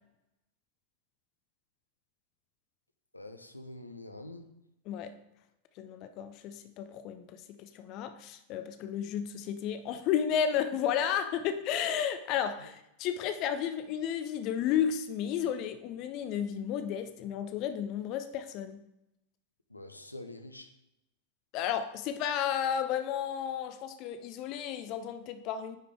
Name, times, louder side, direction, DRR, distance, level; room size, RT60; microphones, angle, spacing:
voice 1, 3.1-4.5 12.6-12.7 19.7-20.7, left 2 dB, 85° left, 7 dB, 0.6 m, -45 dB
voice 2, 4.9-5.2 5.8-18.8 21.5-25.8, left 9 dB, 40° left, 9 dB, 0.5 m, -32 dB
9.8 x 5.0 x 3.4 m, 0.85 s
figure-of-eight pair, 90°, 0 cm